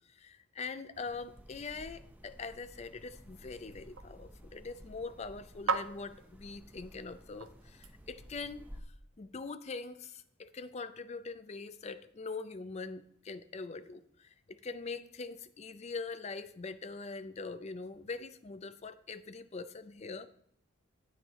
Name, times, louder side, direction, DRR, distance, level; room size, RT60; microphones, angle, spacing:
voice 1, 0.1-8.7 9.2-20.3, left 4 dB, 30° left, 12 dB, 0.4 m, -43 dB
sound 1, 0.9-8.8, equal, 10° right, 0.6 m, -54 dB
sound 2, 3.6-8.5, right 4 dB, 75° right, 0.6 m, -42 dB
9.5 x 8.5 x 3.1 m, 0.69 s
head